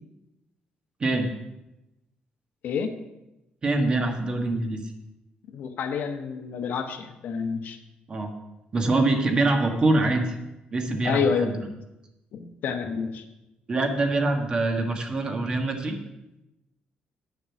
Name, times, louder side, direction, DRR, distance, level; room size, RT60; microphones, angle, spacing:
voice 1, 3.6-4.8 8.1-8.3 8.7-10.2 10.7-11.6 13.7-16.0, right 2 dB, 30° right, 4 dB, 1.5 m, -24 dB
voice 2, 5.5-7.8 11.0-11.7 12.3-13.2, left 6 dB, 65° left, 6 dB, 1.1 m, -28 dB
9.2 x 7.0 x 7.2 m, 0.94 s
cardioid pair, 150°, 3 cm